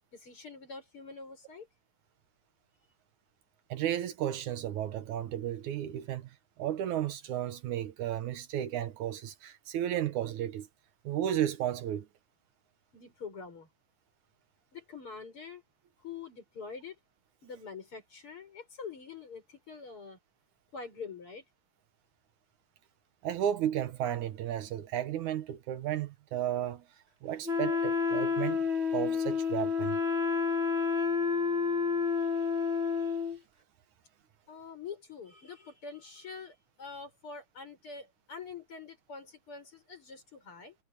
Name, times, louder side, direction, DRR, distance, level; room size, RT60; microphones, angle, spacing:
voice 1, 0.1-1.7 12.9-13.7 14.7-15.6 16.0-17.0 17.4-20.2 20.7-21.5 34.5-40.8, left 5 dB, 40° left, 7.1 m, -45 dB
voice 2, 3.7-6.3 6.6-10.7 11.0-12.1 23.2-26.8 27.2-28.6 28.9-30.0, right 11 dB, 75° right, 2.4 m, -33 dB
Wind instrument woodwind instrument, 27.4-33.4, left 5 dB, 25° right, 2.0 m, -29 dB
omnidirectional pair, 3.6 m